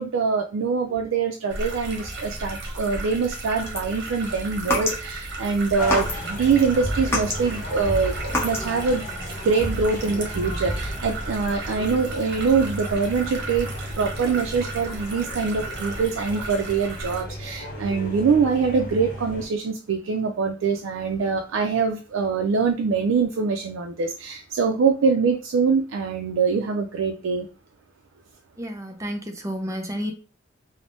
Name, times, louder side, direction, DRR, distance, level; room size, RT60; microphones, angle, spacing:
voice 1, 0.0-9.1 9.4-13.7 14.0-27.5, right 5 dB, 75° right, 4 dB, 0.4 m, -24 dB
sound 1, 1.5-17.2, right 2 dB, 60° right, 0.8 m, -35 dB
sound 2, 3.6-5.3 5.8-6.5 6.8-8.8, left 1 dB, 15° left, 0.8 m, -28 dB
sound 3, 5.8-19.5, equal, 45° left, 0.9 m, -34 dB
voice 2, 28.6-30.1, equal, 15° right, 4 dB, 0.5 m, -31 dB
3.3 x 2.0 x 2.6 m, 0.35 s
head